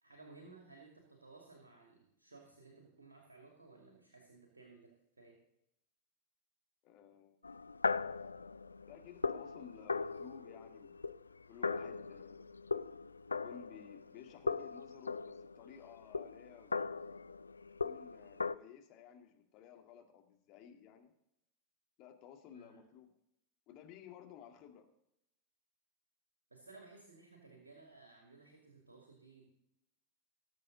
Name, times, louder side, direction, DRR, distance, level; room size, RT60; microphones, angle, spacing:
voice 1, 0.0-5.4 22.5-22.8 26.5-29.5, right 3 dB, 75° right, 1 dB, 2.4 m, -58 dB
voice 2, 6.8-7.4 8.9-11.0 11.5-12.5 13.4-16.8 17.8-21.1 22.0-23.1 23.7-24.9, left 9 dB, 40° left, 3 dB, 2.1 m, -55 dB
sound 1, 7.4-14.2 14.5-18.5, left 4 dB, 80° left, 0.3 m, -39 dB
19.0 x 7.6 x 3.9 m, 0.80 s
figure-of-eight pair, 90°, 0 cm